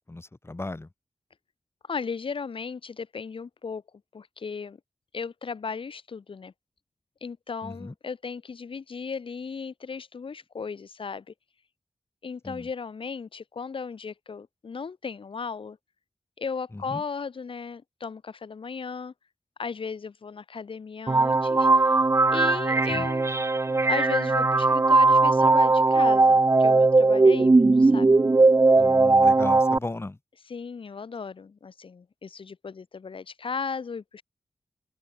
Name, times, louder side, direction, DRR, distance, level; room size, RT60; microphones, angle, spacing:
voice 1, 0.1-0.9 7.6-7.9 12.4-12.7 16.7-17.0 22.9-23.1 28.8-30.2, left 2 dB, 30° left, 2.2 m, -36 dB
voice 2, 1.9-3.8 4.1-4.8 5.1-6.5 7.2-11.3 12.2-15.8 16.4-19.1 19.6-22.0 22.3-23.3 23.9-28.2 30.5-34.2, left 5 dB, 75° left, 2.0 m, -36 dB
sound 1, 21.1-29.8, right 3 dB, 30° right, 0.6 m, -19 dB
open air
cardioid pair, 60°, 9 cm